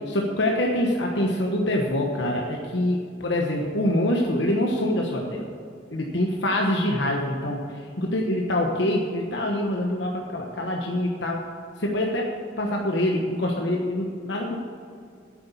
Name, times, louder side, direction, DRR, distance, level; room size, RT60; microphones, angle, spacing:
voice 1, 0.1-5.5 5.9-7.6 8.0-11.4 11.8-12.3 12.6-14.6, left 1 dB, 65° left, 0 dB, 1.2 m, -25 dB
9.8 x 8.1 x 8.4 m, 2.2 s
head